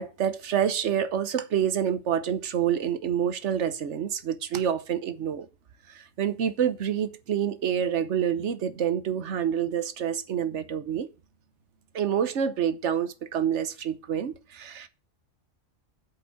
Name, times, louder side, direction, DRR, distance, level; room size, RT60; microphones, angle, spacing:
voice 1, 0.0-5.5 5.9-11.1 11.9-14.9, right 9 dB, 65° right, 1.2 m, -27 dB
8.2 x 5.3 x 7.1 m
omnidirectional pair, 1.3 m